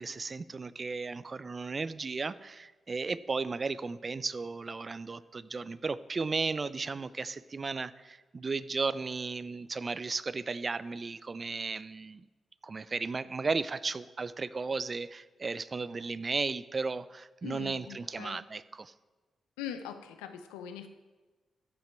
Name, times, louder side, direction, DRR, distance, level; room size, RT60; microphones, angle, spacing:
voice 1, 0.0-12.3 12.6-18.9, right 4 dB, 45° right, 17 dB, 0.4 m, -35 dB
voice 2, 17.4-18.4 19.6-20.9, left 9 dB, 90° left, 9 dB, 0.5 m, -42 dB
15.0 x 5.8 x 4.5 m, 1.3 s
hypercardioid pair, 40°, 0 cm